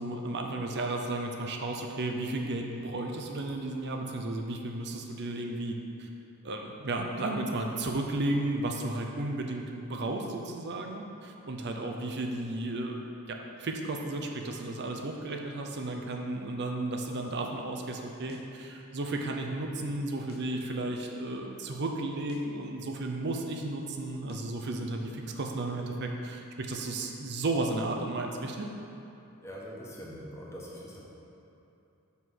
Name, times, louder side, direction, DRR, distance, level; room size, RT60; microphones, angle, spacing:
voice 1, 0.0-6.1 6.4-13.0 13.3-28.7, right 2 dB, 55° right, 2 dB, 0.7 m, -33 dB
sound 1, 18.3-18.6 20.3-20.6 22.3-22.6 24.3-24.6, left 2 dB, 45° left, 0.5 m, -50 dB
voice 2, 29.4-31.0, equal, 15° left, -5 dB, 1.1 m, -43 dB
5.6 x 4.7 x 6.2 m, 2.8 s
head